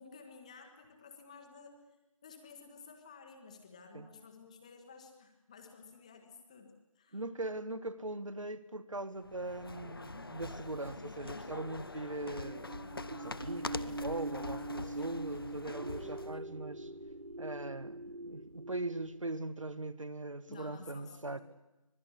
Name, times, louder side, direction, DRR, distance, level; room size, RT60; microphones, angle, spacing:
voice 1, 0.0-1.8 2.2-7.2 15.0-15.2 16.3-16.5 20.5-21.4, left 5 dB, 10° left, 5 dB, 1.3 m, -54 dB
voice 2, 7.1-12.7 13.1-16.9 17.4-21.4, right 2 dB, 60° right, 13 dB, 1.8 m, -41 dB
sound 1, 9.2-16.4, left 3 dB, 40° left, 0.8 m, -44 dB
sound 2, 12.2-19.3, right 2 dB, 80° right, 1.4 m, -43 dB
25.0 x 20.0 x 8.4 m, 0.97 s
figure-of-eight pair, 165°, 18 cm